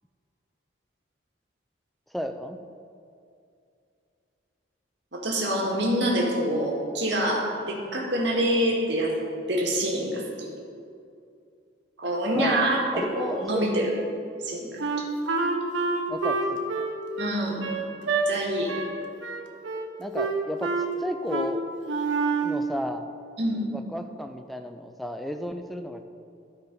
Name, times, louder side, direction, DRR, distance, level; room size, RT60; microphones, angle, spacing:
voice 1, 2.1-2.6 12.3-13.7 16.1-16.9 20.0-21.6 22.4-23.0 23.7-26.0, equal, ahead, 6 dB, 0.4 m, -33 dB
voice 2, 5.1-9.1 9.5-10.5 12.0-13.8 14.4-14.8 17.2-17.6 18.3-18.7 23.4-23.6, right 1 dB, 65° right, -2 dB, 1.9 m, -26 dB
Wind instrument woodwind instrument, 14.8-18.3 18.7-18.9 19.2-19.9 20.1-20.9 21.3-21.5 21.8-22.6, right 4 dB, 90° right, 1.0 m, -27 dB
12.5 x 4.8 x 5.3 m, 2.5 s
head